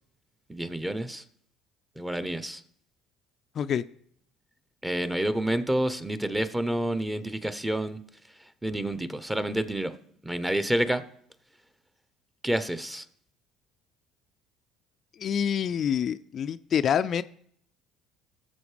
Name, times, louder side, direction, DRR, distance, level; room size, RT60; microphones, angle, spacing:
voice 1, 0.5-1.2 2.0-2.6 4.8-8.0 8.6-9.9 10.2-11.0 12.4-13.0, right 1 dB, 10° right, 13 dB, 0.9 m, -28 dB
voice 2, 15.2-17.2, left 8 dB, 50° left, 12 dB, 0.3 m, -26 dB
18.0 x 7.4 x 3.4 m, 0.66 s
hypercardioid pair, 65°, 0 cm